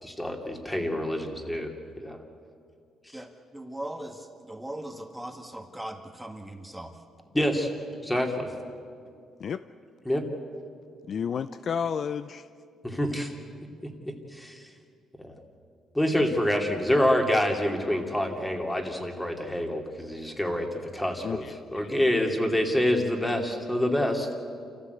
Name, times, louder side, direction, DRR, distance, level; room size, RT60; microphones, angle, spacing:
voice 1, 0.0-1.7 2.0-2.2 3.1-3.2 7.3-7.7 8.0-8.5 10.0-10.2 12.8-13.3 14.3-14.7 15.2-15.3 15.9-24.3, left 1 dB, 10° left, 3 dB, 3.0 m, -27 dB
voice 2, 3.1-7.0, right 1 dB, 5° right, 4 dB, 1.9 m, -39 dB
voice 3, 11.1-12.4 21.2-21.5, left 7 dB, 55° left, 12 dB, 0.5 m, -31 dB
28.5 x 14.5 x 8.2 m, 2.4 s
cardioid pair, 90°, 0 cm